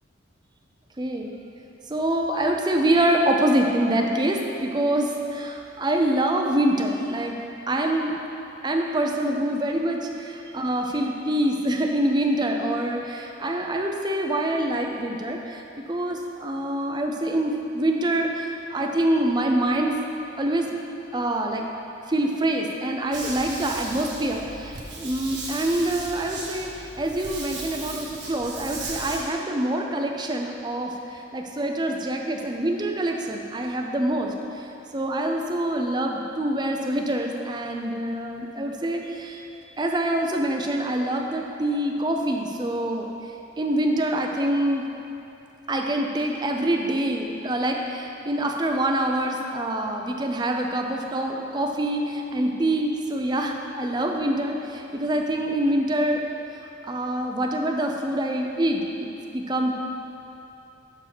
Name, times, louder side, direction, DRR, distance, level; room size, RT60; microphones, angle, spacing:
voice 1, 1.0-1.3 1.9-7.4 7.7-8.2 8.6-15.6 15.9-20.0 20.4-20.7 21.1-21.7 22.1-26.7 27.0-30.9 31.3-34.3 34.9-39.4 39.8-43.1 43.6-44.8 45.7-56.2 56.8-59.8, right 1 dB, 20° right, 2 dB, 0.5 m, -25 dB
sound 1, 23.1-29.2, right 2 dB, 70° right, 1.4 m, -36 dB
6.7 x 4.7 x 6.0 m, 2.9 s
head